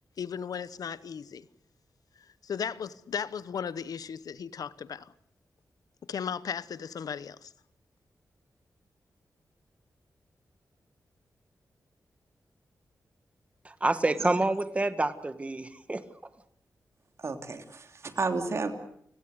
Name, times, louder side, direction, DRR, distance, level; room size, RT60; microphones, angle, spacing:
voice 1, 0.2-1.4 2.4-5.1 6.1-7.5, left 7 dB, 80° left, 1.0 m, -36 dB
voice 2, 13.7-16.0, right 2 dB, 20° right, 1.7 m, -28 dB
voice 3, 17.2-18.7, right 4 dB, 50° right, 3.1 m, -32 dB
29.5 x 18.0 x 8.1 m
wide cardioid pair, 115°, 6 cm